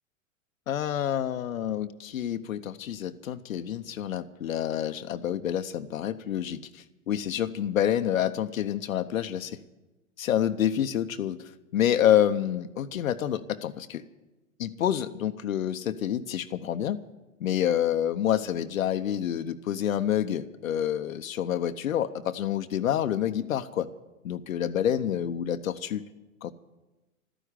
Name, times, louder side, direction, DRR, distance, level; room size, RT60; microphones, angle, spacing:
voice 1, 0.7-9.6 10.2-11.4 11.7-14.0 14.6-17.0 17.4-23.9 24.2-26.0 26.4-26.5, left 10 dB, 80° left, 8 dB, 0.8 m, -28 dB
13.0 x 10.0 x 9.8 m, 1.1 s
hypercardioid pair, 110°, 40 cm